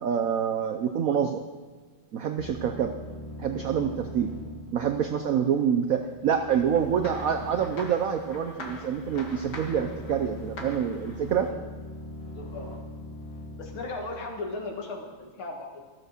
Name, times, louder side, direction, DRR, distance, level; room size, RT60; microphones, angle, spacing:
voice 1, 0.0-1.4 2.1-2.9 3.4-4.3 4.7-11.5, right 8 dB, 75° right, 5 dB, 0.8 m, -26 dB
sound 1, 2.4-14.9, left 1 dB, 15° left, 1.7 m, -42 dB
sound 2, 6.5-11.5, left 3 dB, 55° left, 1.8 m, -44 dB
voice 2, 12.3-12.8 13.6-15.9, left 2 dB, 75° left, 1 dB, 2.6 m, -37 dB
13.5 x 7.6 x 6.5 m, 1.5 s
omnidirectional pair, 2.3 m